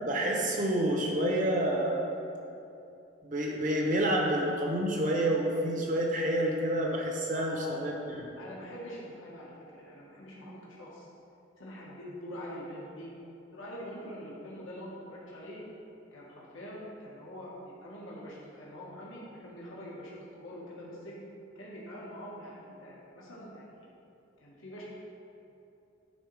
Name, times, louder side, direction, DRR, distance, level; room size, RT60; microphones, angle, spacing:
voice 1, 0.1-2.0 3.2-8.3, right 1 dB, 40° right, -1 dB, 1.0 m, -28 dB
voice 2, 7.3-7.8 8.3-11.1 11.6-13.1 13.5-15.6 16.1-21.2 21.5-23.9 24.4-24.8, equal, 75° left, -6 dB, 1.6 m, -44 dB
9.6 x 4.0 x 4.8 m, 2.7 s
head